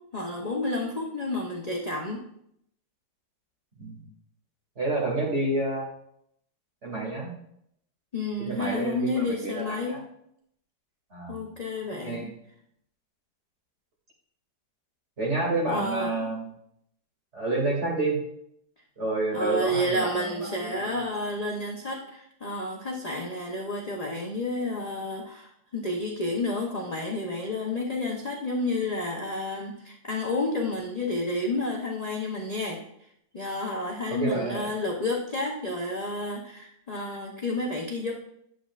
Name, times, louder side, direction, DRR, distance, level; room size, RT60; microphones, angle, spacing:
voice 1, 0.1-2.2 8.1-10.1 11.3-12.3 15.7-16.3 19.3-32.8 33.3-38.1, left 2 dB, 40° left, -1 dB, 0.5 m, -30 dB
voice 2, 4.8-5.9 6.8-7.3 8.4-10.0 11.1-11.4 12.0-12.3 15.2-16.5 17.3-18.2 19.0-21.0 34.1-34.7, right 2 dB, 40° right, -4 dB, 2.6 m, -29 dB
9.4 x 7.7 x 2.4 m, 0.74 s
omnidirectional pair, 1.9 m